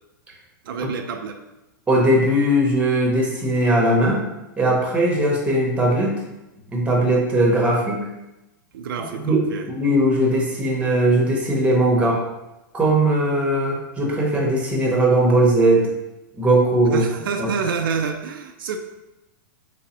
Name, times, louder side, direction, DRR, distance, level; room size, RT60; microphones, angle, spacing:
voice 1, 0.7-1.4 8.7-9.7 16.9-18.8, right 5 dB, 80° right, 5 dB, 0.4 m, -28 dB
voice 2, 1.9-4.2 4.6-6.2 6.7-8.0 9.1-12.2 12.7-15.9 16.4-17.0 17.4-17.5, right 1 dB, 10° right, -2 dB, 0.9 m, -19 dB
3.4 x 3.0 x 2.9 m, 0.95 s
hypercardioid pair, 125°, 11 cm